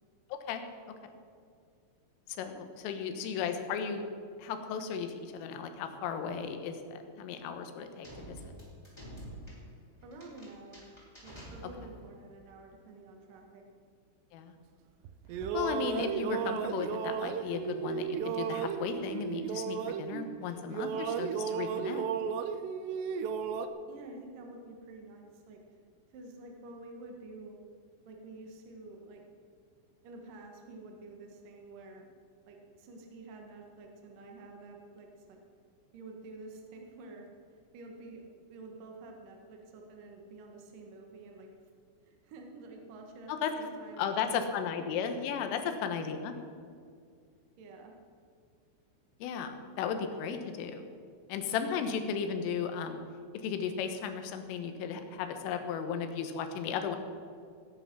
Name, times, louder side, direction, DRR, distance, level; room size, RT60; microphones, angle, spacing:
voice 1, 0.3-0.6 1.0-1.1 2.3-4.1 4.4-8.5 14.3-14.6 15.5-22.1 43.3-43.5 44.0-46.4 49.2-50.9 51.3-53.0 53.4-57.0, left 7 dB, 80° left, 7 dB, 3.6 m, -35 dB
sound 1, 8.0-12.1, equal, 5° left, 3.9 m, -48 dB
voice 2, 10.0-10.9 11.2-13.6 23.9-25.6 26.1-27.6 28.1-29.2 30.0-32.1 32.5-35.4 35.9-37.3 37.7-41.7 42.0-44.9 45.5-45.9 47.6-48.0, right 2 dB, 65° right, 1 dB, 2.2 m, -49 dB
sound 2, 15.0-20.4 20.7-23.7, right 7 dB, 85° right, 2.4 m, -34 dB
18.5 x 9.9 x 6.1 m, 2.2 s
omnidirectional pair, 6.0 m